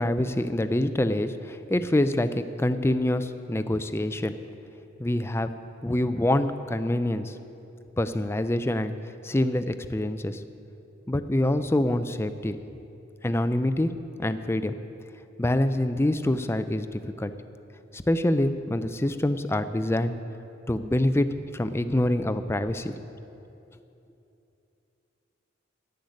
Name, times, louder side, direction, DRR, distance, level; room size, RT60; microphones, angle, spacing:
voice 1, 0.0-4.4 5.0-5.5 5.8-7.4 8.0-8.9 9.2-10.4 11.1-12.6 13.2-13.9 14.2-14.7 15.4-17.3 17.9-20.1 20.7-21.3 21.5-22.9, left 1 dB, 15° left, 10 dB, 0.4 m, -25 dB
10.5 x 7.9 x 9.8 m, 2.9 s
head